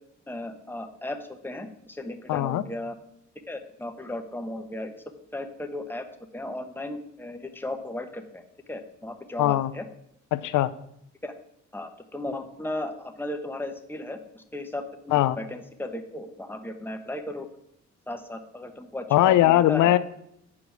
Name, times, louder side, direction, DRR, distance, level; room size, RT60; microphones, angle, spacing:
voice 1, 0.3-2.9 3.5-4.9 5.3-6.0 6.3-8.4 8.7-9.8 11.2-11.3 11.7-17.5 18.1-19.9, left 1 dB, 5° left, 5 dB, 1.0 m, -35 dB
voice 2, 2.3-2.6 9.4-9.7 10.3-10.7 15.1-15.4 19.1-20.0, left 14 dB, 80° left, 14 dB, 0.6 m, -20 dB
8.4 x 5.0 x 6.0 m, 0.74 s
cardioid pair, 90°, 30 cm